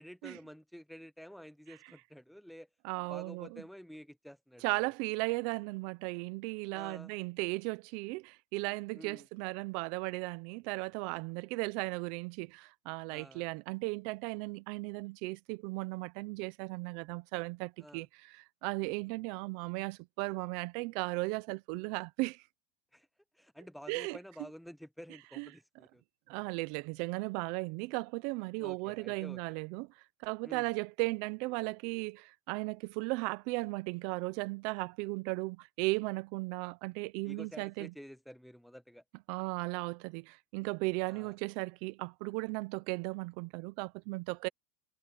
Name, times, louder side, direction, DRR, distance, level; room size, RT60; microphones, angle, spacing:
voice 1, 0.0-2.7 3.1-4.7 6.7-7.1 8.9-9.3 13.1-13.4 17.8-18.1 18.8-19.0 22.9-23.1 23.3-26.0 28.6-29.4 30.4-30.7 37.2-39.0 41.0-41.4, equal, ahead, 0.5 m, -50 dB
voice 2, 2.8-3.6 4.6-22.4 23.9-24.2 25.4-25.5 26.3-29.9 30.2-37.9 39.3-44.5, right 25 dB, 55° right, 0.6 m, -36 dB
supercardioid pair, 150°, 0 cm